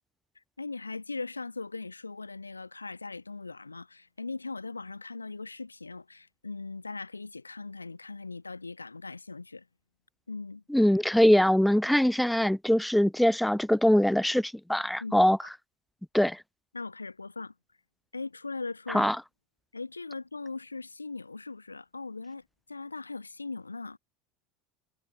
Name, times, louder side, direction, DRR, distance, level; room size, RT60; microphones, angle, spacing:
voice 1, 0.6-9.7 10.3-10.6 15.0-15.5 16.7-17.5 18.1-19.1 19.7-22.4 22.7-24.0, left 3 dB, 90° left, 1.0 m, -39 dB
voice 2, 10.7-15.4 16.1-16.4 18.9-19.2, equal, ahead, 0.4 m, -23 dB
figure-of-eight pair, 75°, 0 cm